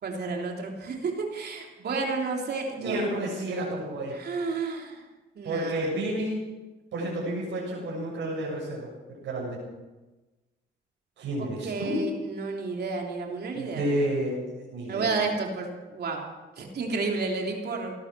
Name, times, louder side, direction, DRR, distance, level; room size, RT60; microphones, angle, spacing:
voice 1, 0.0-3.0 4.1-5.0 5.4-5.9 11.4-13.8 14.9-16.2 16.6-17.9, right 4 dB, 55° right, 1 dB, 3.3 m, -31 dB
voice 2, 2.8-4.1 5.4-6.4 6.9-9.6 11.2-12.0 13.5-14.4 14.7-15.1, right 1 dB, 70° right, -5 dB, 7.1 m, -30 dB
18.5 x 12.0 x 6.2 m, 1.2 s
cardioid pair, 90°, 20 cm